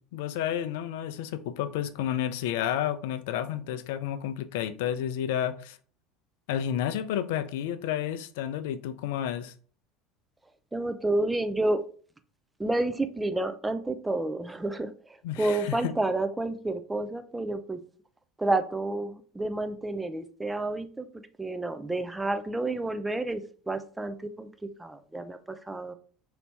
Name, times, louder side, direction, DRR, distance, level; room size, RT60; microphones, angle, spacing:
voice 1, 0.1-5.8 6.5-9.5 15.2-15.9, left 10 dB, 65° left, 12 dB, 0.3 m, -31 dB
voice 2, 10.7-11.8 12.6-14.9 15.4-17.8 18.4-21.1 21.4-24.5 24.8-25.9, right 2 dB, 10° right, 9 dB, 0.4 m, -30 dB
2.8 x 2.6 x 3.3 m, 0.42 s
figure-of-eight pair, 70°, 0 cm